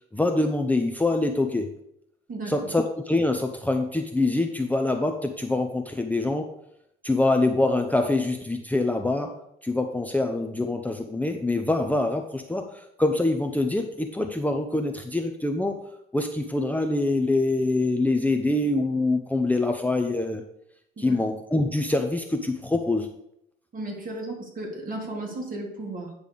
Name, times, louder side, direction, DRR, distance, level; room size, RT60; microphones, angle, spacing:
voice 1, 0.1-1.7 2.5-6.5 7.0-9.3 9.6-15.8 16.1-20.4 21.0-23.1, left 2 dB, 10° left, 4 dB, 0.7 m, -25 dB
voice 2, 2.3-2.7 21.0-21.2 23.7-26.1, right 2 dB, 45° right, -1 dB, 2.8 m, -35 dB
9.4 x 3.4 x 6.9 m, 0.77 s
cardioid pair, 90°, 20 cm